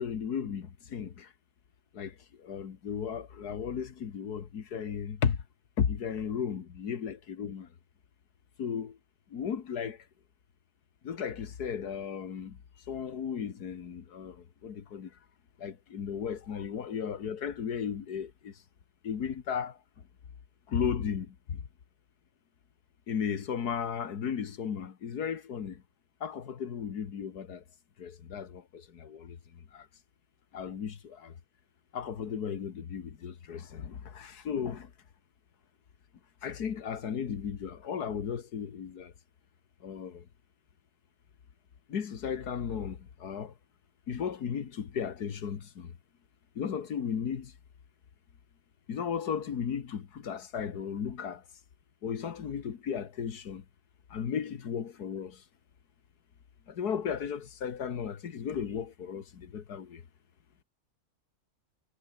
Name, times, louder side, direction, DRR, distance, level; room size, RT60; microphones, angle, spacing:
voice 1, 0.0-1.3 1.9-5.4 5.8-7.7 8.6-9.0 9.3-10.0 11.0-12.6 12.9-15.1 15.6-18.6 19.0-19.8 20.7-21.6 23.1-25.8 26.2-27.6 28.0-29.9 30.5-31.3 31.9-34.9 36.4-39.1 39.8-40.3 41.9-43.5 44.1-45.9 46.6-47.5 48.9-51.4 52.0-53.6 54.1-55.4 56.7-60.0, left 7 dB, 85° left, 2.1 m, -35 dB
omnidirectional pair, 1.6 m